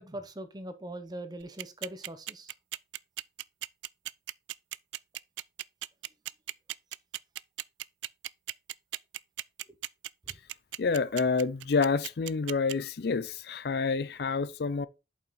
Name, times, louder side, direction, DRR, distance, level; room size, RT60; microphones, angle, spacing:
voice 1, 0.0-2.5 10.3-10.4, right 1 dB, 20° right, 0.9 m, -41 dB
sound 1, 1.4-12.7, right 15 dB, 75° right, 0.3 m, -36 dB
voice 2, 10.8-14.9, left 4 dB, 55° left, 0.4 m, -28 dB
7.4 x 5.6 x 4.0 m
head